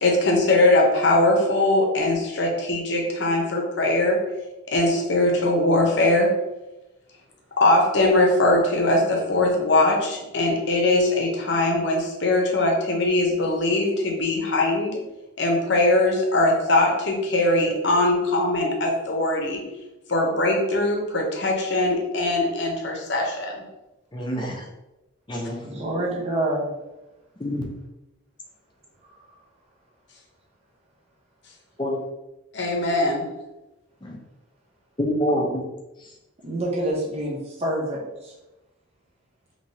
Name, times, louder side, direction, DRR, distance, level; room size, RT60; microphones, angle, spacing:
voice 1, 0.0-4.2 4.7-6.3 7.6-15.0 15.4-19.6 20.1-23.5 32.5-33.3, left 2 dB, 60° left, 0 dB, 0.7 m, -21 dB
voice 2, 24.1-24.6 25.3-25.6 27.4-27.7 31.8-32.0 34.0-34.2 35.0-35.6, equal, 20° left, 0 dB, 0.5 m, -26 dB
voice 3, 25.4-26.8 29.0-29.4 36.4-38.4, right 1 dB, 30° right, -2 dB, 0.6 m, -28 dB
3.3 x 2.8 x 2.7 m, 0.98 s
head